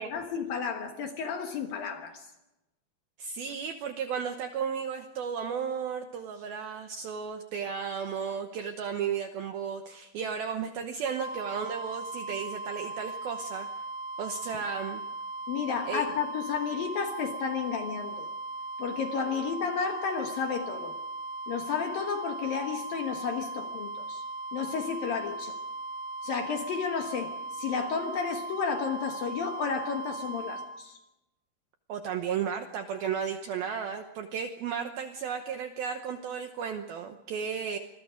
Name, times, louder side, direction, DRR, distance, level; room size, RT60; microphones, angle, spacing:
voice 1, 0.0-2.3 15.5-18.3 18.8-21.0 21.5-24.3 24.5-25.6 26.2-31.0, left 6 dB, 65° left, 2.5 m, -32 dB
voice 2, 3.2-13.7 14.2-15.0 15.9-16.0 31.9-37.8, right 7 dB, 75° right, 2.2 m, -34 dB
sound 1, 11.2-30.7, right 2 dB, 35° right, 2.9 m, -38 dB
26.0 x 22.5 x 5.1 m
omnidirectional pair, 5.6 m